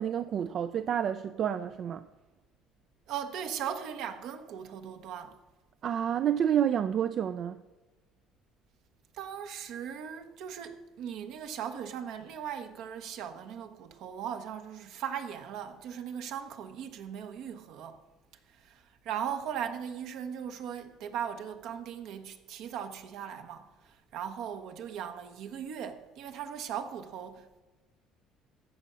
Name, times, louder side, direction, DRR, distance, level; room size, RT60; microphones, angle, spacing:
voice 1, 0.0-2.1 5.8-7.6, right 9 dB, 50° right, 0.4 m, -29 dB
voice 2, 3.1-5.4 9.1-18.0 18.5-27.6, right 8 dB, 70° right, 1.0 m, -38 dB
14.5 x 5.4 x 6.2 m
supercardioid pair, 100°, 0 cm